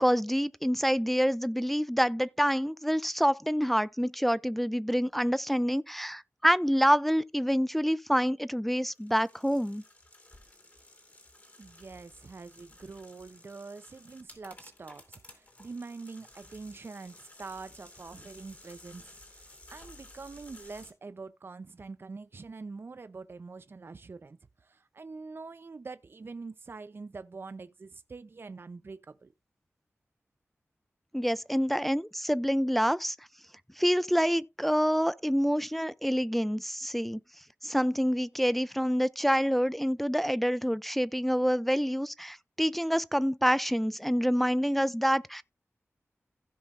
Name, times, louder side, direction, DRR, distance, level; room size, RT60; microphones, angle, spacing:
voice 1, 0.0-9.8 31.1-33.2 33.8-37.2 37.6-45.4, equal, 5° left, 0.3 m, -27 dB
sound 1, 8.9-20.9, left 1 dB, 35° left, 2.9 m, -54 dB
voice 2, 11.6-29.3, right 4 dB, 50° right, 0.5 m, -45 dB
16.0 x 5.4 x 2.5 m
wide cardioid pair, 85°, 5 cm